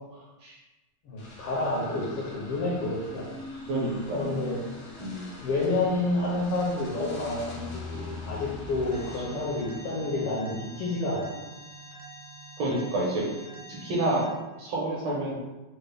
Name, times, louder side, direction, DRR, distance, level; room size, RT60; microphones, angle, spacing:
voice 1, 1.0-3.3 4.1-4.6 5.4-11.4, left 2 dB, 75° left, -6 dB, 1.4 m, -29 dB
sound 1, 1.2-10.7, left 3 dB, 90° left, 1.0 m, -42 dB
voice 2, 3.7-4.3 5.0-5.3 12.6-13.2 13.8-14.2 14.6-15.3, right 2 dB, 70° right, -4 dB, 2.0 m, -28 dB
Alarm, 8.9-14.2, right 2 dB, 90° right, 2.1 m, -46 dB
5.0 x 2.1 x 3.4 m, 1.0 s
omnidirectional pair, 3.3 m